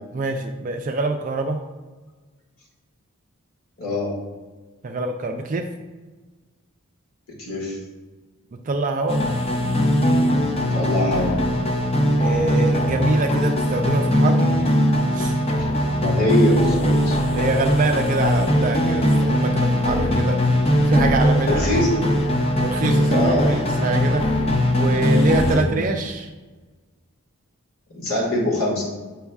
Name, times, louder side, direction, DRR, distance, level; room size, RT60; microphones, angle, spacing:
voice 1, 0.1-1.6 4.8-5.7 8.7-9.2 12.2-14.5 15.1-15.4 17.3-21.6 22.6-24.3 24.8-26.3, right 2 dB, 35° right, 4 dB, 0.3 m, -25 dB
voice 2, 3.8-4.2 7.3-7.8 10.7-11.4 15.6-15.7 16.0-17.2 21.5-22.0 23.1-23.5 25.5-25.8 27.9-28.8, left 1 dB, 65° left, -3 dB, 1.9 m, -23 dB
sound 1, 9.1-25.6, equal, 25° left, 0.6 m, -20 dB
8.0 x 5.3 x 2.4 m, 1.3 s
head